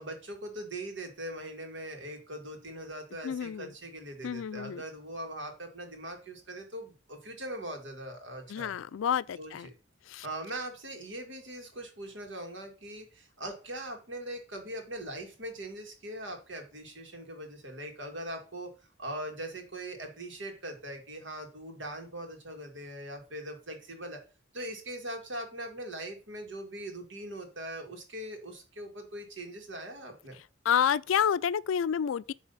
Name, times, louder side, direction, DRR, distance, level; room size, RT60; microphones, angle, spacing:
voice 1, 0.0-8.7 9.4-9.7 10.2-18.7 19.0-24.2 24.5-30.4, right 1 dB, 70° right, 2.2 m, -41 dB
voice 2, 3.2-3.7 4.2-4.8 8.5-9.7 10.1-10.3 30.7-32.3, left 8 dB, 90° left, 0.4 m, -29 dB
9.8 x 3.4 x 5.5 m
head